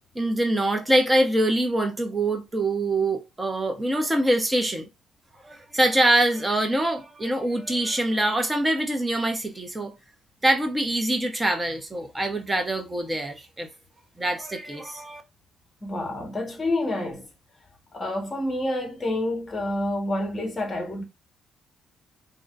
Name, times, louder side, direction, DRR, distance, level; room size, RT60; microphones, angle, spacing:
voice 1, 0.1-4.9 5.4-9.9 10.4-13.7 14.2-15.2, right 1 dB, 15° right, 1.0 m, -24 dB
voice 2, 15.8-17.3 17.9-21.0, left 1 dB, 25° left, 1.4 m, -28 dB
3.9 x 2.9 x 2.5 m
cardioid pair, 90°, 0 cm